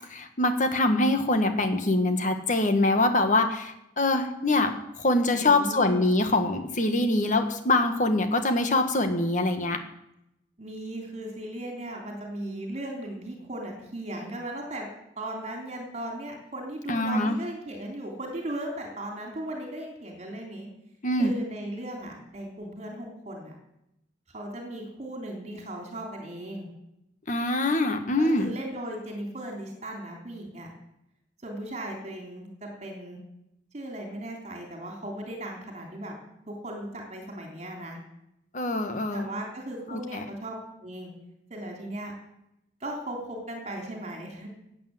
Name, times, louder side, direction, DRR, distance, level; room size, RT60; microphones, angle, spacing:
voice 1, 0.1-9.8 16.9-17.3 21.0-21.3 27.3-28.5 38.5-39.3 39.9-40.2, left 2 dB, 45° left, 7 dB, 1.7 m, -24 dB
voice 2, 5.3-5.9 10.6-14.9 15.2-20.7 21.2-23.5 24.3-26.7 28.2-30.7 31.4-33.2 33.7-36.1 36.5-38.0 39.1-41.1 41.5-42.1 42.8-44.5, right 1 dB, 40° right, 1 dB, 3.3 m, -37 dB
17.5 x 8.7 x 7.8 m, 0.84 s
head